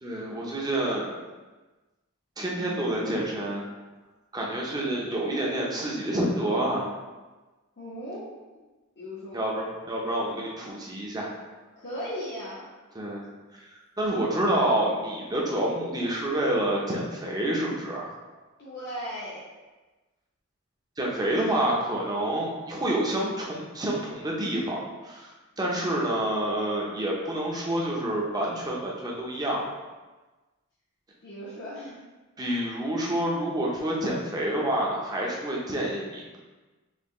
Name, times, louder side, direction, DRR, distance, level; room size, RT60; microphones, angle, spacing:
voice 1, 0.0-1.1 2.4-3.6 4.3-6.9 9.3-11.3 12.9-13.3 13.5-18.1 21.0-25.3 25.6-29.6 32.4-36.4, right 1 dB, 20° right, -3 dB, 0.7 m, -28 dB
voice 2, 4.8-5.8 7.8-8.2 8.5-8.6 9.0-9.4 11.8-12.7 18.6-19.4 25.6-25.8 31.2-32.0, equal, 55° left, -9 dB, 0.9 m, -38 dB
4.3 x 3.0 x 3.0 m, 1.2 s
head